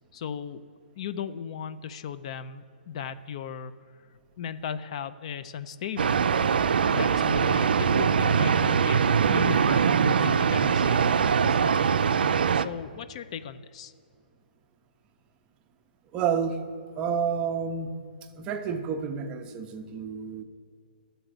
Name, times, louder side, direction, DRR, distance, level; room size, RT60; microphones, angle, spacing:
voice 1, 0.1-0.6 1.0-3.7 4.4-6.2 6.9-11.1 11.4-11.9 12.5-13.9, left 7 dB, 40° left, 12 dB, 0.3 m, -37 dB
sound 1, 6.0-12.7, right 6 dB, 80° right, 0.4 m, -22 dB
voice 2, 16.1-16.6 16.9-17.9 18.4-20.4, right 7 dB, 20° right, 7 dB, 0.5 m, -29 dB
11.0 x 4.0 x 7.7 m, 2.4 s
hypercardioid pair, 160°, 5 cm